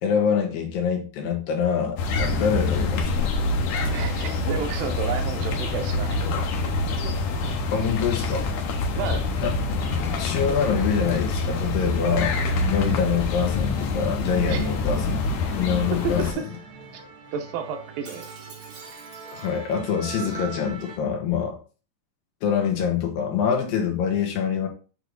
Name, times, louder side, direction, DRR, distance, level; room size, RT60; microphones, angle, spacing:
voice 1, 0.0-3.3 7.7-8.5 9.4-9.5 10.2-12.3 12.7-15.3 15.6-16.3 19.3-21.6 22.4-24.7, left 7 dB, 85° left, 1 dB, 3.1 m, -25 dB
sound 1, 2.0-16.3, left 3 dB, 65° left, 2.1 m, -26 dB
voice 2, 3.9-6.2 6.6-6.7 8.9-9.3 14.5-14.7 16.0-16.1 17.3-18.3, right 6 dB, 80° right, 4 dB, 2.7 m, -31 dB
Musical instrument, 9.8-21.0, right 5 dB, 55° right, 1.1 m, -44 dB
8.6 x 3.2 x 3.9 m, 0.36 s
omnidirectional pair, 3.9 m